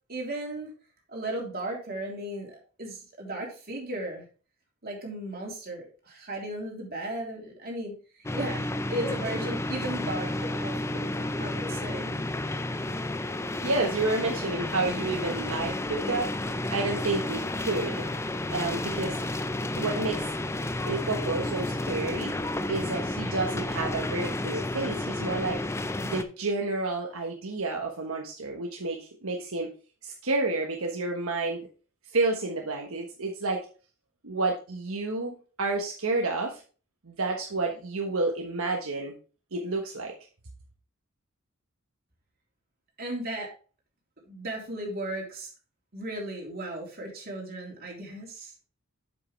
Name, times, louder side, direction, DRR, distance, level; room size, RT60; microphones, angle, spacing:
voice 1, 0.1-0.7 1.1-4.2 4.8-12.2 43.0-43.5 44.3-45.5 45.9-48.5, right 1 dB, 50° right, -1 dB, 3.2 m, -36 dB
sound 1, 8.2-26.2, left 1 dB, 15° left, 0.5 m, -31 dB
voice 2, 13.6-16.3 16.7-18.1 18.5-19.2 19.8-20.3 20.8-22.4 22.7-25.6 26.0-29.7 30.0-31.7 32.1-33.6 34.2-36.6 37.0-39.1 39.5-40.1, right 3 dB, 75° right, 1 dB, 1.3 m, -30 dB
7.7 x 7.7 x 3.3 m, 0.36 s
head